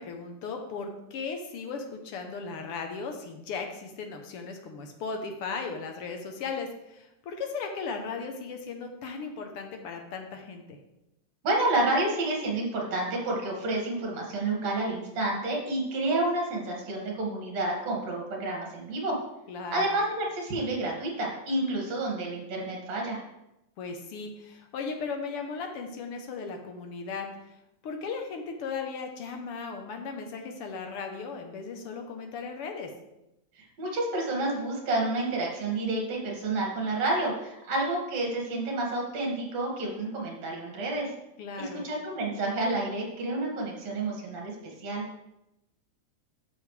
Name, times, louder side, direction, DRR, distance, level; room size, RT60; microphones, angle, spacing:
voice 1, 0.0-10.8 19.5-19.9 23.8-27.3 27.8-32.9 41.4-41.8, left 4 dB, 65° left, 4 dB, 1.5 m, -37 dB
voice 2, 11.4-19.2 19.7-23.2 33.6-41.1 41.6-45.0, right 2 dB, 65° right, -1 dB, 3.3 m, -29 dB
12.0 x 6.6 x 3.3 m, 0.89 s
omnidirectional pair, 3.3 m